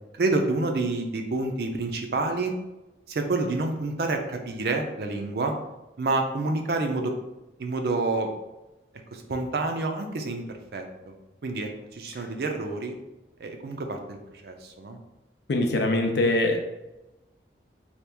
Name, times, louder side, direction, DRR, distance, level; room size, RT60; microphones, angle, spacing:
voice 1, 0.1-2.5 3.1-5.5 6.0-7.1 7.6-8.3 9.1-10.4 10.7-11.1 11.4-12.9 13.4-14.2 14.4-15.0, right 3 dB, 60° right, 4 dB, 0.4 m, -28 dB
voice 2, 15.5-16.6, left 2 dB, 70° left, 3 dB, 0.5 m, -23 dB
2.9 x 2.3 x 3.4 m, 1.0 s
head